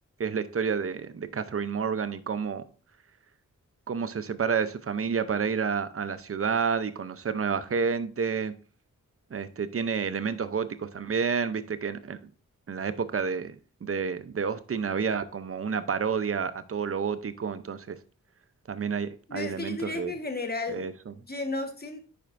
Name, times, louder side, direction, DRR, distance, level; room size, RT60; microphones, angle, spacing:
voice 1, 0.2-2.6 3.9-8.5 9.3-12.2 12.7-18.0 18.7-20.1 20.7-21.1, right 6 dB, 45° right, 12 dB, 0.7 m, -30 dB
voice 2, 19.3-22.0, left 3 dB, 30° left, 5 dB, 1.3 m, -34 dB
10.0 x 4.3 x 2.6 m, 0.40 s
cardioid pair, 55°, 33 cm